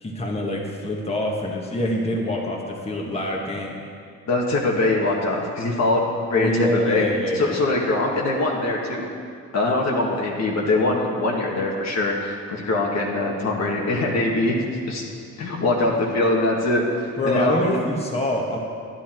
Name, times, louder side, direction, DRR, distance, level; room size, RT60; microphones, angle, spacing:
voice 1, 0.0-3.7 6.3-7.6 17.2-18.6, left 1 dB, 20° left, -2 dB, 1.7 m, -25 dB
voice 2, 4.3-7.1 7.3-9.1 9.5-14.6 14.9-15.0 15.4-17.8, left 2 dB, 60° left, -2 dB, 1.9 m, -22 dB
11.0 x 10.5 x 4.6 m, 2.2 s
cardioid pair, 90°, 30 cm